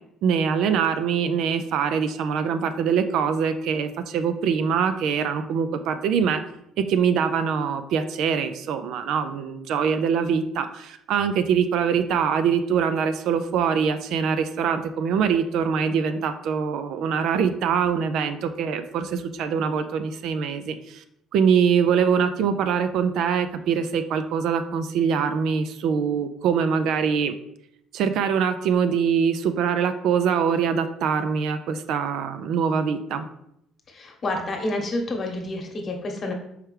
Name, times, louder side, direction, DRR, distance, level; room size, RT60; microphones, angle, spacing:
voice 1, 0.2-6.4 6.9-21.0 21.3-27.3 27.9-33.3, right 7 dB, 70° right, 9 dB, 0.4 m, -23 dB
voice 2, 33.9-36.3, left 2 dB, 40° left, 2 dB, 1.1 m, -29 dB
4.8 x 3.2 x 3.2 m, 0.76 s
supercardioid pair, 85°, 0 cm